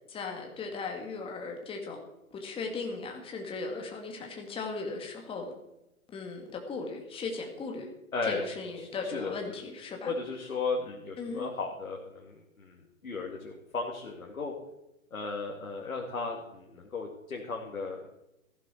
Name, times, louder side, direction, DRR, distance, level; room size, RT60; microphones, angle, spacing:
voice 1, 0.1-2.0 2.3-5.5 6.1-7.9 8.2-10.1 11.2-11.5, left 4 dB, 15° left, 2 dB, 2.1 m, -37 dB
voice 2, 8.8-9.3 10.1-14.5 15.1-18.1, left 4 dB, 75° left, 0 dB, 2.4 m, -35 dB
15.5 x 11.5 x 4.5 m, 0.90 s
figure-of-eight pair, 125°, 43 cm